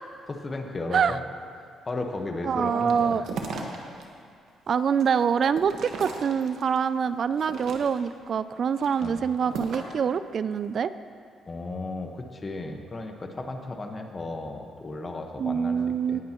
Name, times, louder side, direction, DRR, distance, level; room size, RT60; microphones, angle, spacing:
voice 1, 0.3-1.2 1.8-3.3 3.8-4.0 9.0-9.2 11.5-15.8 16.1-16.2, left 2 dB, 30° left, 4 dB, 1.3 m, -34 dB
voice 2, 2.5-3.2 4.7-10.9 15.4-16.2, right 7 dB, 55° right, 14 dB, 0.3 m, -25 dB
sound 1, 2.8-4.0 4.5-6.8 7.3-8.2 8.7-10.0, right 4 dB, 75° right, 1.4 m, -37 dB
18.5 x 10.5 x 3.0 m, 2.3 s
cardioid pair, 90°, 0 cm